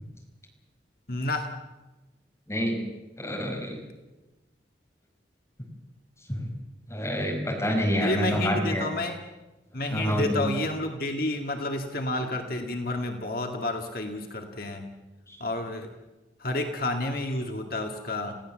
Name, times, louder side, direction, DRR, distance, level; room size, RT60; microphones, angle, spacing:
voice 1, 1.1-1.5 8.0-9.2 9.7-14.9 15.4-15.9 16.4-18.4, left 1 dB, 55° left, 4 dB, 2.0 m, -30 dB
voice 2, 3.2-3.8 6.3-6.5 6.9-8.8 9.9-10.5 15.3-15.4, equal, 15° left, 0 dB, 5.2 m, -27 dB
27.0 x 16.5 x 7.6 m, 1.1 s
head